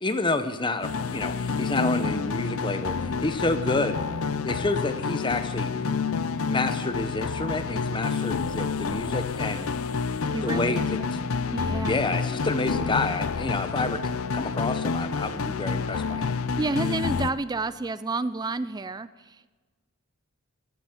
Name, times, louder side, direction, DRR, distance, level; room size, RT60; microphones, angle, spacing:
voice 1, 0.0-4.0 4.4-5.7 6.5-9.7 10.4-10.8 11.1-11.2 11.8-16.4, left 2 dB, 20° left, 9 dB, 0.8 m, -29 dB
sound 1, 0.8-17.3, left 5 dB, 70° left, 0.6 m, -28 dB
voice 2, 10.3-11.1 11.5-12.0 16.6-19.5, right 3 dB, 20° right, 15 dB, 0.3 m, -30 dB
15.0 x 7.9 x 9.7 m, 1.3 s
head